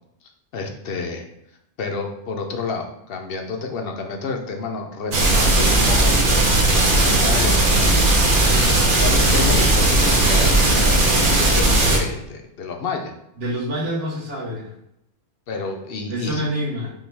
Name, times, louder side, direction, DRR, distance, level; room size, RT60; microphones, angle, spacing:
voice 1, 0.5-1.2 1.8-6.4 6.7-13.1 15.5-16.4, left 4 dB, 60° left, 3 dB, 0.7 m, -30 dB
sound 1, 5.1-12.0, right 2 dB, 45° right, 0.9 m, -17 dB
voice 2, 13.4-14.7 16.1-16.9, equal, 70° right, -4 dB, 1.5 m, -26 dB
5.4 x 2.3 x 3.3 m, 0.81 s
omnidirectional pair, 1.3 m